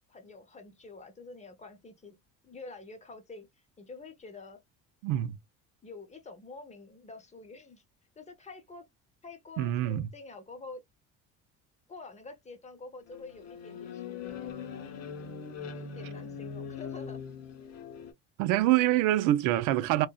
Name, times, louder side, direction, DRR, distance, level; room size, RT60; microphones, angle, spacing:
voice 1, 0.1-2.2 2.4-3.5 3.8-4.6 5.8-7.8 8.2-8.8 9.2-10.8 11.9-14.7 15.7-17.2, left 3 dB, 25° left, 0.8 m, -47 dB
voice 2, 5.0-5.4 9.6-10.1 18.4-20.1, right 14 dB, 80° right, 0.5 m, -25 dB
sound 1, 13.1-18.1, left 6 dB, 55° left, 0.9 m, -41 dB
2.5 x 2.3 x 2.3 m
cardioid pair, 115°, 30 cm